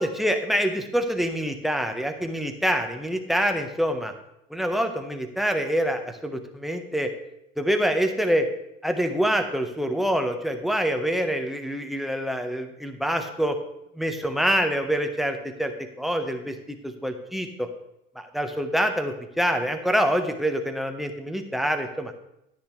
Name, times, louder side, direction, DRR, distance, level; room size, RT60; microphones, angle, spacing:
voice 1, 0.0-4.1 4.5-7.1 7.6-8.5 8.8-13.6 14.0-15.7 16.0-17.7 18.1-22.1, equal, ahead, 7 dB, 1.2 m, -26 dB
10.5 x 10.0 x 3.2 m, 0.81 s
hypercardioid pair, 85°, 39 cm